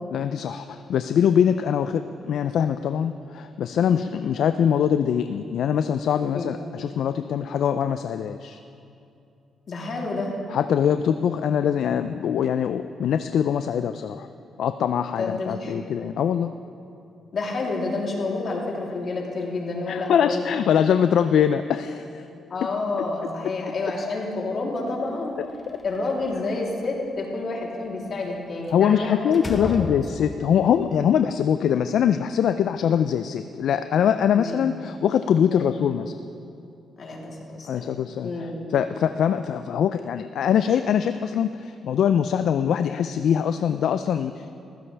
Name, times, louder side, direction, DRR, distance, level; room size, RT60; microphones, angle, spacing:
voice 1, 0.1-8.6 10.5-14.3 14.6-16.6 19.9-22.3 25.4-25.8 28.7-36.1 37.7-44.5, left 8 dB, 75° left, 10 dB, 0.4 m, -23 dB
voice 2, 9.7-10.3 15.2-15.7 17.3-20.4 22.5-25.3 25.8-29.9 34.4-34.6 35.5-35.7 37.0-38.5, left 3 dB, 55° left, -3 dB, 3.2 m, -29 dB
Slam, 25.5-26.5 28.7-28.9 29.3-30.6, left 2 dB, 25° left, 1.1 m, -35 dB
19.5 x 15.5 x 3.4 m, 2.6 s
cardioid pair, 90°, 0 cm